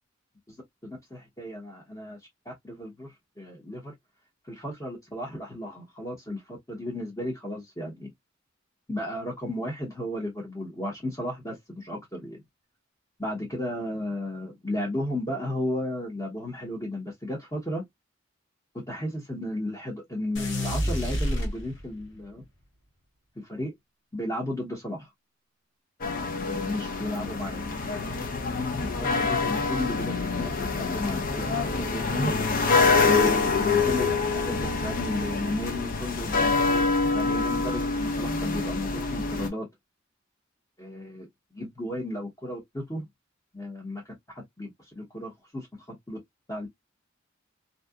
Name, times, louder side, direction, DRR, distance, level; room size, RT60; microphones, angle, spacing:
voice 1, 0.8-2.2 2.5-3.1 3.4-3.9 4.5-8.1 8.9-12.4 13.2-17.8 18.7-22.4 23.4-23.7 24.1-25.1 26.4-28.2 28.8-32.3 33.0-39.7 40.8-41.3 41.5-43.1 43.5-44.0 44.6-46.2 46.5-46.7, left 1 dB, 15° left, 0.9 m, -34 dB
sound 1, 20.3-22.1, equal, 65° left, 1.1 m, -29 dB
sound 2, 26.0-39.5, left 4 dB, 45° left, 0.6 m, -26 dB
2.7 x 2.2 x 2.3 m
head